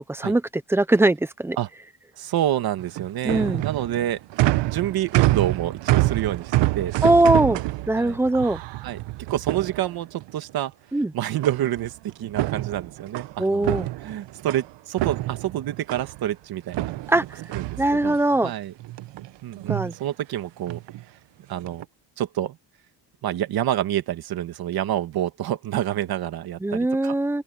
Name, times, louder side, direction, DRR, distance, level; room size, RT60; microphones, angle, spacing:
voice 1, 0.1-0.4 0.7-1.6 3.2-3.6 7.0-7.6 7.9-8.6 10.9-11.1 13.4-13.9 17.1-17.4 17.8-18.5 19.7-19.9 26.6-27.4, right 2 dB, 5° right, 0.7 m, -21 dB
voice 2, 2.2-4.2 4.6-7.6 8.0-8.2 8.8-9.0 9.3-10.7 11.1-13.8 14.0-16.9 17.5-18.7 19.4-20.8 21.5-21.8 22.2-22.6 23.2-27.1, right 12 dB, 60° right, 1.7 m, -28 dB
sound 1, 2.8-10.3 11.4-11.9 12.2-14.7 15.0-16.2 16.7-18.4 18.8-19.3 19.6-19.9 20.7-21.0 21.5-21.8, right 17 dB, 80° right, 1.1 m, -26 dB
open air
cardioid pair, 165°, 42 cm